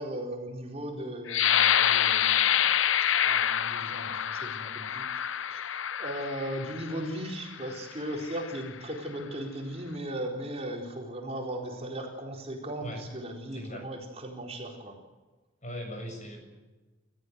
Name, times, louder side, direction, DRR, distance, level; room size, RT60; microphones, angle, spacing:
voice 1, 0.0-2.7 3.2-5.2 5.5-15.0, right 1 dB, 30° right, 0 dB, 4.2 m, -37 dB
sound 1, 1.3-6.9 7.6-7.8 8.2-8.7, left 10 dB, 65° left, 0.7 m, -26 dB
voice 2, 13.5-13.8 15.6-16.4, equal, 35° left, 4 dB, 6.9 m, -39 dB
29.0 x 14.5 x 8.1 m, 1.2 s
head